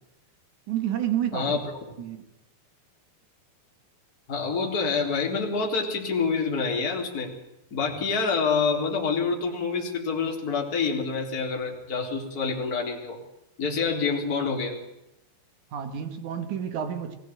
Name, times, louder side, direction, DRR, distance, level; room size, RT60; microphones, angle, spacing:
voice 1, 0.7-1.6 2.0-2.3 15.7-17.2, right 10 dB, 55° right, 2.4 m, -30 dB
voice 2, 1.3-1.7 4.3-7.3 7.7-13.2 13.6-14.8, left 5 dB, 20° left, 3.8 m, -27 dB
22.0 x 16.5 x 9.0 m
omnidirectional pair, 5.3 m